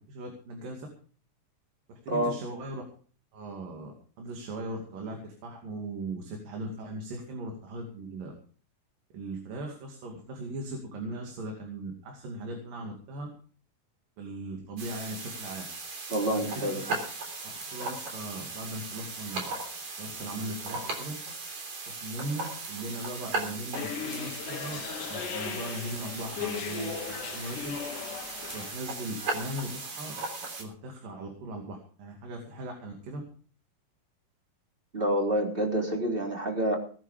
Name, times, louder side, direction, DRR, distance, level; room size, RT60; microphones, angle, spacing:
voice 1, 0.1-0.9 2.0-2.8 3.3-8.3 9.1-13.3 14.2-15.7 16.3-17.0 17.7-19.5 20.0-21.1 21.9-24.8 25.1-27.7 28.5-30.2 30.6-33.2, right 1 dB, 65° right, 2 dB, 4.1 m, -38 dB
sound 1, 14.8-30.6, right 3 dB, 50° right, 4.6 m, -38 dB
voice 2, 16.1-16.8 34.9-36.8, right 1 dB, 15° right, 1 dB, 3.3 m, -27 dB
sound 2, 23.7-28.8, left 8 dB, 70° left, 2.6 m, -37 dB
19.0 x 10.0 x 5.1 m, 0.43 s
omnidirectional pair, 4.2 m